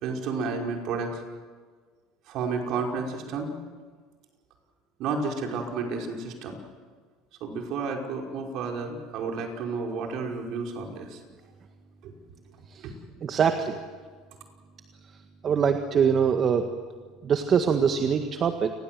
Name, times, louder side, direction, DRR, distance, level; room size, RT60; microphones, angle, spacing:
voice 1, 0.0-1.2 2.3-3.5 5.0-6.6 7.4-11.2 12.0-12.1 12.8-12.9, right 4 dB, 60° right, 2 dB, 5.3 m, -31 dB
voice 2, 13.2-13.8 15.4-16.7 17.2-18.7, right 7 dB, 40° right, 6 dB, 1.8 m, -23 dB
29.0 x 21.0 x 7.8 m, 1.6 s
hypercardioid pair, 85°, 0 cm